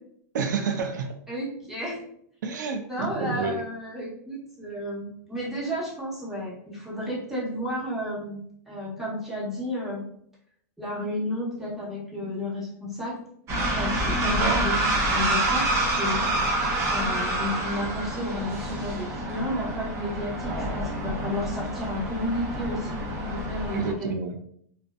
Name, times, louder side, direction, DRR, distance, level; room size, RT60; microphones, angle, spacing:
voice 1, 0.3-1.2 2.4-3.6 14.4-14.6 23.7-24.4, right 5 dB, 85° right, 6 dB, 0.4 m, -29 dB
voice 2, 1.3-2.0 2.9-8.4 8.7-10.1 10.8-13.2 13.7-14.9 15.1-16.4 16.9-23.0 23.3-24.0, left 1 dB, 5° right, -7 dB, 1.0 m, -32 dB
sound 1, 13.5-23.9, right 1 dB, 30° right, 0.6 m, -27 dB
2.5 x 2.1 x 2.4 m, 0.68 s
hypercardioid pair, 130°, 10 cm